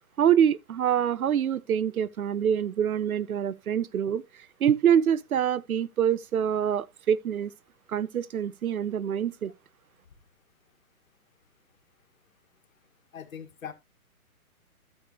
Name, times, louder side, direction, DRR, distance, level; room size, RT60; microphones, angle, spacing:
voice 1, 0.2-4.2 4.6-7.5 7.9-9.5, right 9 dB, 70° right, 0.8 m, -25 dB
voice 2, 13.1-13.7, left 8 dB, 65° left, 1.8 m, -40 dB
12.5 x 6.9 x 2.9 m
hypercardioid pair, 180°, 44 cm